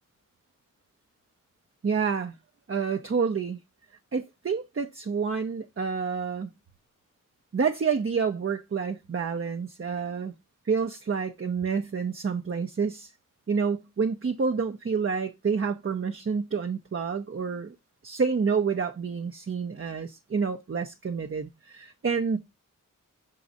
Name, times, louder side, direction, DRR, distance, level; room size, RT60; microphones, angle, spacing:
voice 1, 1.8-2.3 2.7-3.6 4.1-6.5 7.5-10.3 10.7-13.1 13.5-17.8 18.0-22.4, right 5 dB, 40° right, 0.7 m, -28 dB
6.1 x 3.8 x 4.0 m
wide cardioid pair, 60°, 32 cm